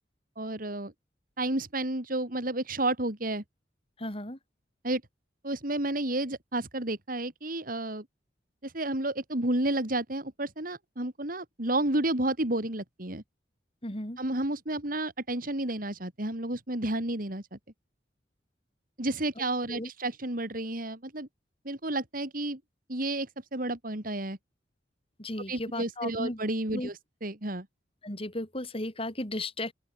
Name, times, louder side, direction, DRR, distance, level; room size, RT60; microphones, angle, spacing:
voice 1, 0.4-0.9 1.4-3.4 4.8-5.0 5.4-8.0 8.6-13.2 14.2-17.6 19.0-21.3 21.6-22.6 22.9-24.4 25.5-27.7, right 1 dB, 50° right, 3.4 m, -31 dB
voice 2, 4.0-4.4 13.8-14.2 19.7-19.9 25.2-26.4 26.7-26.9 28.0-29.7, left 1 dB, 30° left, 7.4 m, -35 dB
open air
head